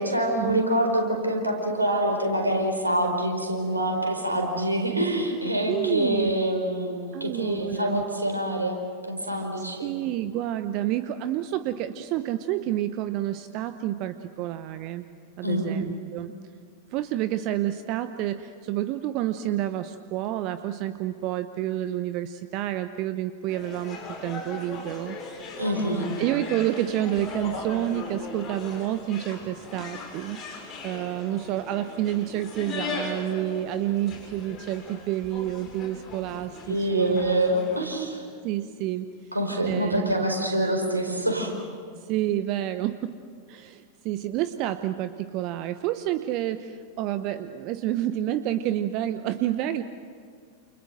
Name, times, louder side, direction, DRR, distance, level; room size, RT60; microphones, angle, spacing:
voice 1, 0.0-9.9 15.4-15.8 25.6-26.1 36.7-38.2 39.3-41.5, right 1 dB, 85° right, 2 dB, 4.7 m, -26 dB
voice 2, 5.7-6.3 7.1-8.0 9.8-15.0 15.4-16.3 16.9-25.2 25.5-25.6 26.2-37.3 38.4-39.1 39.7-40.3 42.0-43.1 43.5-49.8, right 13 dB, 40° right, 11 dB, 0.9 m, -29 dB
sound 1, 23.5-37.9, left 3 dB, 30° left, 7.4 m, -38 dB
29.0 x 29.0 x 6.6 m, 2.2 s
figure-of-eight pair, 90°, 0 cm